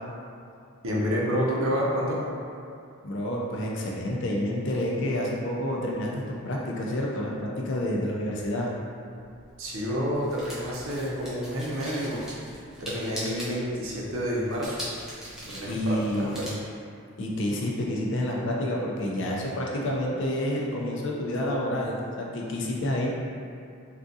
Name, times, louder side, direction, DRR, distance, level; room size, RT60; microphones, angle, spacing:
voice 1, 0.8-2.3 9.6-12.2 12.8-14.9 15.4-16.5, equal, 65° right, -4 dB, 0.6 m, -29 dB
voice 2, 3.0-8.7 15.7-16.4 17.2-23.1, left 1 dB, 55° left, -2 dB, 0.4 m, -29 dB
sound 1, 9.2-16.5, equal, ahead, 0.5 m, -41 dB
3.6 x 2.4 x 2.6 m, 2.5 s
head